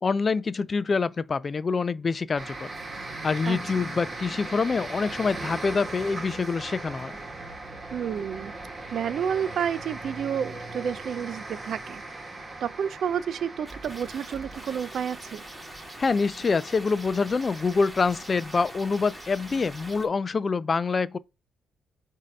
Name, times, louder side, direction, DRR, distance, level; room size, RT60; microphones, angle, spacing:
voice 1, 0.0-2.7 3.2-7.2 16.0-21.2, left 4 dB, 35° left, 0.3 m, -26 dB
sound 1, 2.4-20.0, right 2 dB, 35° right, 1.8 m, -40 dB
voice 2, 3.4-3.9 7.9-8.5 8.9-12.0 12.6-15.4, right 8 dB, 60° right, 0.5 m, -30 dB
sound 2, 13.6-20.1, right 1 dB, 5° right, 2.4 m, -44 dB
7.3 x 2.7 x 5.2 m
cardioid pair, 90°, 0 cm